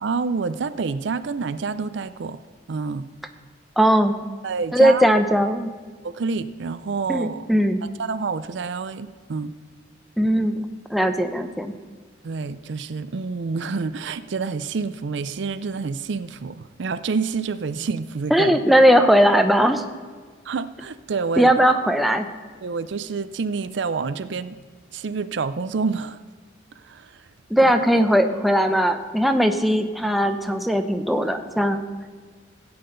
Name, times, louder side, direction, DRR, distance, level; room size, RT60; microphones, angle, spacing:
voice 1, 0.0-2.4 2.7-3.1 4.4-5.1 6.0-7.4 7.8-9.5 12.2-18.6 20.5-21.7 22.6-24.6 24.9-26.2 26.8-27.2 27.6-27.7, right 4 dB, 65° right, 13 dB, 0.4 m, -28 dB
voice 2, 3.8-4.2 4.7-5.7 7.1-7.8 10.2-11.7 18.3-19.9 21.4-22.3 27.5-31.8, equal, ahead, 6 dB, 0.6 m, -19 dB
16.0 x 8.7 x 3.9 m, 1.5 s
head